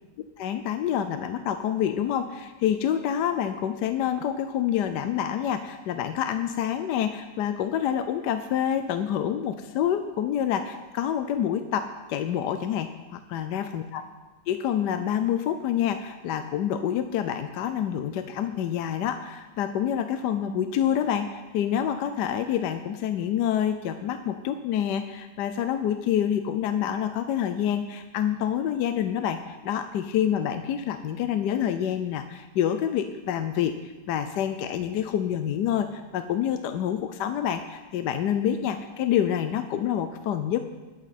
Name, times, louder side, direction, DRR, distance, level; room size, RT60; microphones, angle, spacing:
voice 1, 0.4-14.0 14.5-40.6, left 9 dB, 75° left, 9 dB, 1.2 m, -27 dB
20.5 x 8.3 x 4.2 m, 1.3 s
omnidirectional pair, 1.9 m